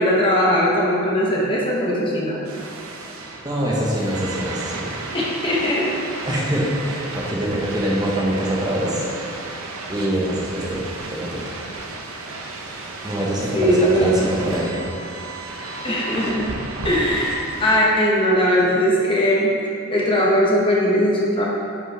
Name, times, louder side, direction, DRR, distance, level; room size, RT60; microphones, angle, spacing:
voice 1, 0.0-2.5 5.1-5.9 13.5-14.2 15.8-16.5 16.8-19.5 19.9-21.5, equal, 25° left, -4 dB, 0.9 m, -19 dB
sound 1, 2.4-17.8, right 3 dB, 70° right, 0.8 m, -33 dB
voice 2, 3.4-4.9 6.3-9.0 9.9-10.9 11.2-11.6 13.0-14.8, right 1 dB, 15° right, -4 dB, 1.0 m, -24 dB
9.8 x 5.2 x 3.4 m, 2.5 s
head